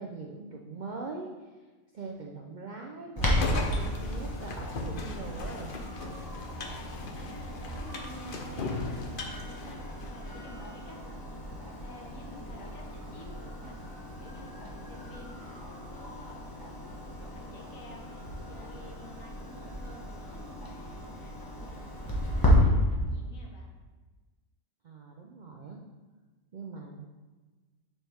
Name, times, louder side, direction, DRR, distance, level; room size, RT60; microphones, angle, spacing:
voice 1, 0.0-1.7 1.9-5.7 24.8-25.8 26.5-27.1, right 3 dB, 60° right, 1 dB, 0.4 m, -42 dB
sound 1, 3.2-10.4, left 3 dB, 50° left, 0.7 m, -38 dB
Clock, 3.2-22.5, equal, 15° left, 1.1 m, -35 dB
voice 2, 7.1-16.6 17.2-23.7, equal, 70° left, 0 dB, 1.6 m, -50 dB
7.1 x 5.8 x 3.5 m, 1.3 s
omnidirectional pair, 1.5 m